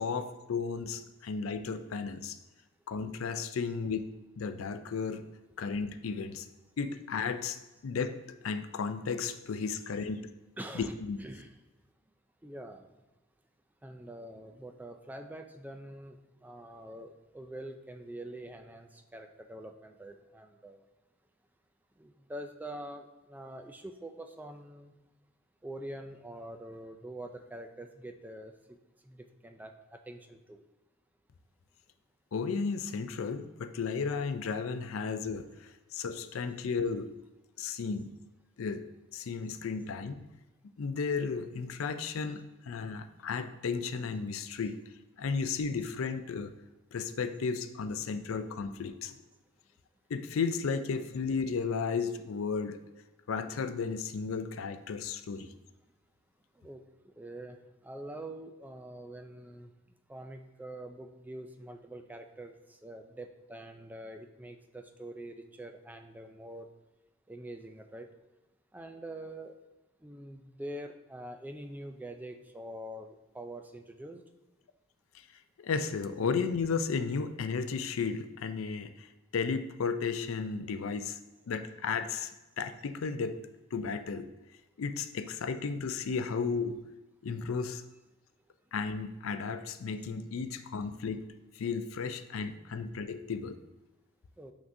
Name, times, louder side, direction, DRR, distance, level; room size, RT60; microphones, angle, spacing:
voice 1, 0.0-2.4 2.9-4.1 4.4-5.2 5.6-6.5 6.8-10.2 10.7-11.2 32.3-37.1 37.6-38.1 38.6-40.2 40.8-44.8 45.2-46.5 46.9-49.2 50.1-52.8 53.3-55.5 75.1-75.2 75.6-81.2 81.5-83.4 83.7-84.3 84.8-86.8 87.2-87.8 88.7-91.2 91.5-93.6, left 5 dB, 85° left, 9 dB, 0.4 m, -34 dB
voice 2, 10.6-11.5 12.4-12.9 13.8-20.8 22.0-24.9 25.6-28.8 29.0-30.6 47.9-48.0 56.6-56.8 57.2-57.6 57.8-59.7 60.1-62.5 62.8-66.7 67.3-68.1 68.7-69.6 70.0-74.2 94.4-94.5, right 1 dB, 10° right, 6 dB, 0.3 m, -45 dB
6.3 x 5.8 x 2.6 m, 1.1 s
head